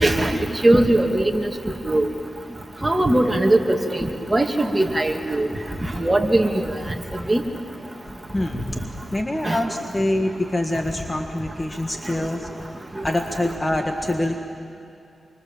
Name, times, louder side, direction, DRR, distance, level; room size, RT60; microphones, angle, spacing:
voice 1, 0.0-1.5 1.9-2.1 2.8-5.5 6.0-6.7 7.3-7.4 9.4-9.6 13.4-13.6, right 1 dB, 20° right, 3 dB, 2.4 m, -20 dB
voice 2, 8.3-8.8 9.1-12.5 13.0-14.4, left 1 dB, 20° left, 4 dB, 1.7 m, -25 dB
26.0 x 25.0 x 7.5 m, 2.5 s
cardioid pair, 60°, 0 cm